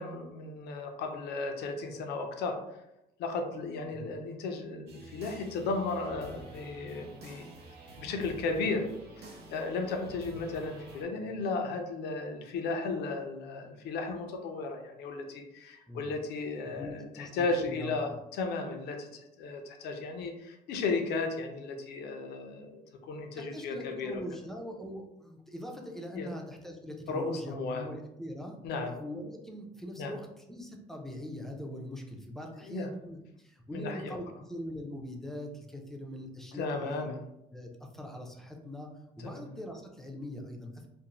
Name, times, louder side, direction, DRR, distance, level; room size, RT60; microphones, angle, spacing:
voice 1, 0.0-2.6 3.2-7.5 8.0-8.9 9.2-24.2 26.1-26.3 27.1-27.9 28.6-28.9 30.0-30.2 32.7-32.9 33.7-34.2 36.5-37.2 39.2-39.5, left 3 dB, 75° left, 4 dB, 0.5 m, -35 dB
sound 1, 4.9-11.0, right 2 dB, 85° right, 0.7 m, -48 dB
voice 2, 16.8-18.0 23.4-28.6 28.8-37.1 37.5-38.9 39.2-40.9, left 1 dB, ahead, 1 dB, 0.4 m, -42 dB
2.5 x 2.0 x 2.9 m, 0.85 s
cardioid pair, 110°, 17 cm